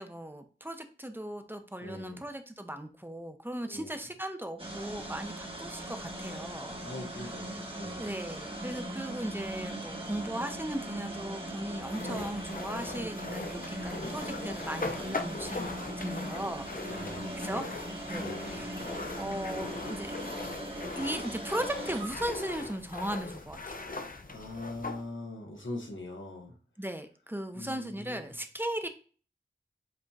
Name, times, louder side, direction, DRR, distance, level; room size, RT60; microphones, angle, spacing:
voice 1, 0.0-6.8 8.0-17.6 18.1-18.8 19.1-20.1 21.0-23.8 26.8-28.9, right 1 dB, 10° right, 7 dB, 0.6 m, -37 dB
voice 2, 1.8-2.2 3.7-4.0 6.8-8.1 12.1-12.4 16.8-17.6 18.1-18.6 19.2-19.6 24.3-26.5 27.5-28.2, left 2 dB, 90° left, 1 dB, 1.2 m, -42 dB
sound 1, 4.6-23.7, right 1 dB, 30° right, 1.1 m, -40 dB
sound 2, 11.8-25.0, left 3 dB, 45° left, 0.6 m, -40 dB
sound 3, 16.1-16.5 17.4-17.9 18.8-19.2 19.5-19.6 20.2-21.1 21.5-22.2, right 1 dB, 70° right, 1.8 m, -57 dB
7.5 x 2.8 x 2.3 m, 0.40 s
wide cardioid pair, 50°, 19 cm